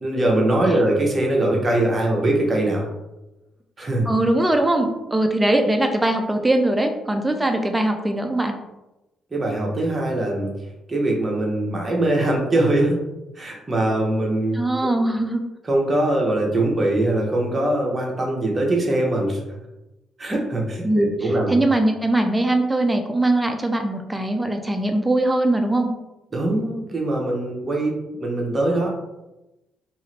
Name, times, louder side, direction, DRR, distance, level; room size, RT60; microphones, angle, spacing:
voice 1, 0.0-2.9 3.8-4.1 9.3-10.5 10.9-13.0 13.4-14.9 15.6-19.6 20.2-21.6 26.3-28.9, right 1 dB, 30° right, -1 dB, 0.8 m, -22 dB
voice 2, 4.1-8.5 14.5-15.4 20.8-21.2 21.5-25.9, right 1 dB, 10° right, 5 dB, 0.4 m, -21 dB
2.6 x 2.5 x 3.2 m, 0.99 s
cardioid pair, 90°, 0 cm